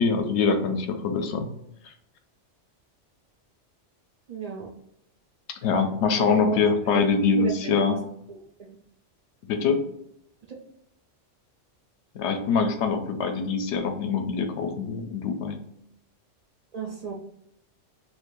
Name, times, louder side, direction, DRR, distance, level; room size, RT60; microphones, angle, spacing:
voice 1, 0.0-1.5 5.6-8.0 9.5-9.8 12.1-15.6, left 5 dB, 70° left, 6 dB, 0.9 m, -24 dB
voice 2, 4.3-4.7 6.2-7.1 7.3-8.0 8.3-8.8 16.7-17.1, right 5 dB, 65° right, 0 dB, 0.4 m, -34 dB
2.6 x 2.5 x 3.7 m, 0.75 s
omnidirectional pair, 1.3 m